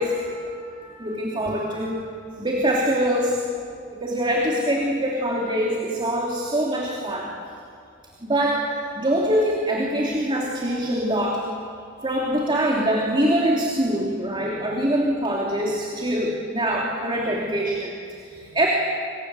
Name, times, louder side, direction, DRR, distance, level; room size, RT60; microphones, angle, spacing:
voice 1, 0.0-2.1 2.4-3.4 3.9-7.3 8.2-8.7 8.9-11.4 12.0-18.7, right 1 dB, 25° right, -2 dB, 3.2 m, -24 dB
27.0 x 27.0 x 8.0 m, 2.3 s
head